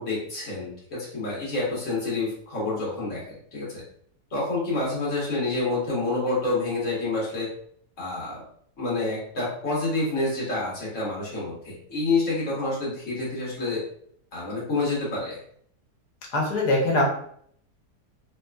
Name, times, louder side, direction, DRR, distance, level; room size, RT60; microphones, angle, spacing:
voice 1, 0.0-3.8 4.3-7.5 8.0-8.4 8.8-13.8 14.3-15.4, left 2 dB, 50° left, -6 dB, 1.6 m, -28 dB
voice 2, 16.3-17.0, left 2 dB, 75° left, -2 dB, 1.5 m, -22 dB
3.3 x 2.9 x 2.3 m, 0.64 s
omnidirectional pair, 1.8 m